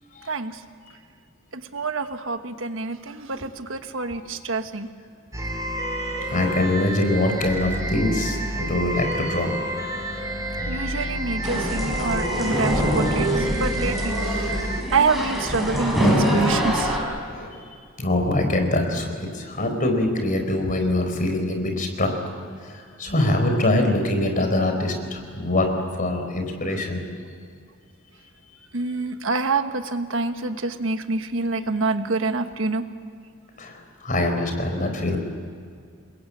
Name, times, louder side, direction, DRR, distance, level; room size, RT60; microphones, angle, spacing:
voice 1, 0.3-0.6 1.5-4.9 10.7-17.0 28.7-32.8, right 3 dB, 70° right, 8 dB, 1.3 m, -27 dB
sound 1, 5.3-14.8, right 1 dB, 15° right, 3.7 m, -29 dB
voice 2, 6.3-9.6 17.3-17.7 18.0-22.1 22.6-25.7 26.0-27.0 33.6-35.2, left 1 dB, 40° left, 5 dB, 4.3 m, -24 dB
sound 2, 11.4-17.0, equal, ahead, 6.4 m, -24 dB
28.5 x 21.5 x 8.6 m, 2.2 s
head